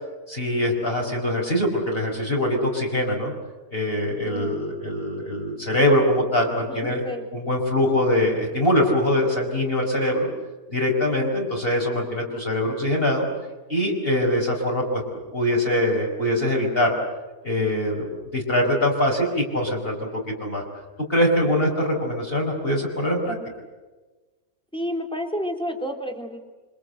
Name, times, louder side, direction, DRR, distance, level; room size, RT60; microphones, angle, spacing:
voice 1, 0.3-3.3 3.7-7.0 7.3-10.3 10.7-13.3 13.7-15.0 15.3-16.9 17.4-18.1 18.3-20.6 21.1-23.4, left 1 dB, 40° left, -1 dB, 5.1 m, -23 dB
voice 2, 4.3-4.6 6.7-7.3 24.7-26.4, equal, 5° left, 2 dB, 3.4 m, -30 dB
27.0 x 25.0 x 7.9 m, 1.2 s
omnidirectional pair, 1.5 m